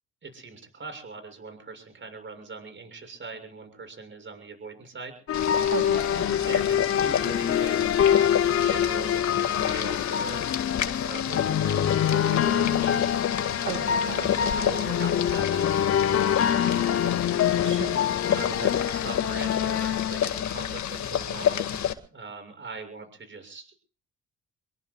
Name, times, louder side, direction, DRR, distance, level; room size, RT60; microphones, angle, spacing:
voice 1, 0.2-5.2 6.5-10.4 11.0-13.3 14.2-16.2 16.8-17.2 18.2-23.7, right 4 dB, 40° right, 5 dB, 7.1 m, -41 dB
Boiling, 5.3-21.9, left 9 dB, 70° left, 2.0 m, -30 dB
sound 1, 5.3-20.8, left 9 dB, 50° left, 0.8 m, -25 dB
voice 2, 5.7-6.6 13.6-14.6 17.6-18.2 18.5-18.7, right 9 dB, 80° right, 4 dB, 2.4 m, -37 dB
27.0 x 22.5 x 2.4 m, 0.39 s
cardioid pair, 90°, 30 cm